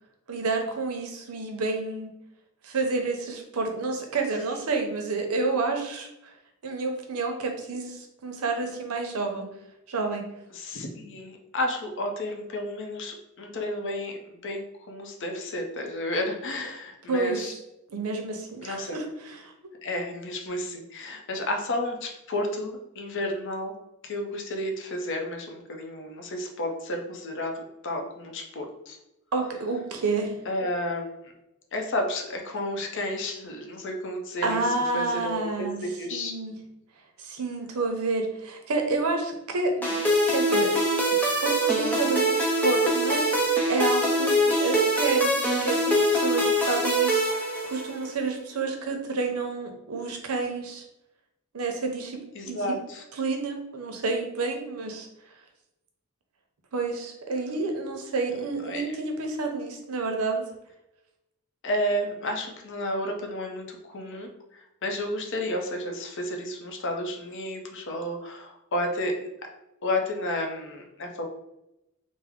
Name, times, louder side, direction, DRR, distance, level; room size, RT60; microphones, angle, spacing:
voice 1, 0.3-2.1 2.6-6.1 6.6-9.5 9.9-10.3 17.1-17.6 17.9-19.5 29.3-30.4 34.4-35.8 36.1-36.6 37.2-40.0 40.3-40.7 41.2-43.4 43.7-50.8 51.5-52.8 53.2-55.1 56.7-60.4, right 3 dB, 85° right, 3 dB, 0.6 m, -29 dB
voice 2, 10.5-17.5 18.6-19.0 19.8-23.7 24.0-29.0 30.5-31.3 31.7-36.4 52.3-53.0 58.6-59.0 61.6-69.1 69.8-71.2, left 1 dB, 55° left, 3 dB, 0.6 m, -32 dB
sound 1, 39.8-48.1, right 1 dB, 10° left, 0.6 m, -24 dB
3.4 x 2.0 x 3.5 m, 0.89 s
head